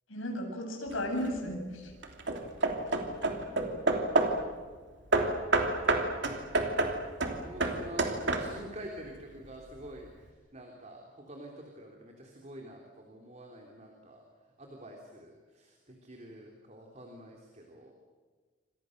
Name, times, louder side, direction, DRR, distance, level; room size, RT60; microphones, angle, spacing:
voice 1, 0.1-1.9, equal, 75° left, 3 dB, 7.7 m, -34 dB
Hammer / Wood, 0.9-1.4 2.0-4.5 5.1-8.8, right 2 dB, 55° right, 3.1 m, -29 dB
voice 2, 3.3-5.0 7.4-14.2 14.6-17.9, equal, 35° right, 1 dB, 3.5 m, -48 dB
28.5 x 26.5 x 6.7 m, 1.5 s
head